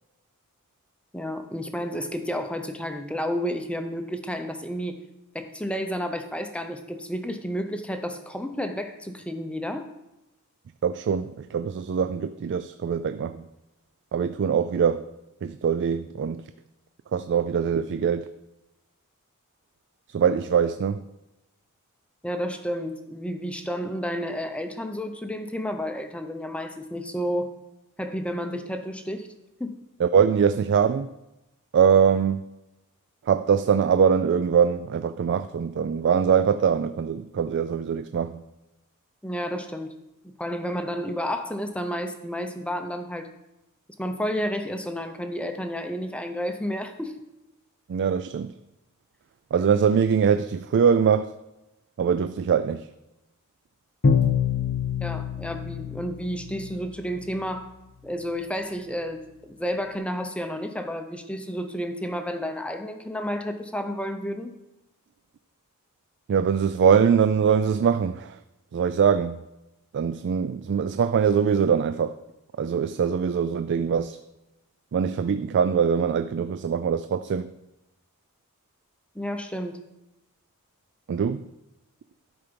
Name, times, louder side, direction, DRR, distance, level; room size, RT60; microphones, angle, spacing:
voice 1, 1.1-5.0 5.3-9.9 22.2-27.5 28.0-29.3 29.6-29.8 39.2-39.9 40.2-43.3 44.0-47.1 55.0-57.7 58.0-64.5 79.1-79.8, equal, 5° left, 0.6 m, -31 dB
voice 2, 10.8-13.4 14.1-15.1 15.4-16.5 17.1-18.3 20.1-21.0 30.0-31.1 31.7-32.4 33.2-38.4 47.9-48.5 49.5-51.3 52.0-52.9 66.3-68.4 68.7-69.4 69.9-72.2 72.6-74.2 74.9-77.5 81.1-81.4, right 7 dB, 55° right, 0.3 m, -23 dB
Bowed string instrument, 54.0-56.8, left 6 dB, 50° left, 0.7 m, -25 dB
12.5 x 4.5 x 5.2 m
head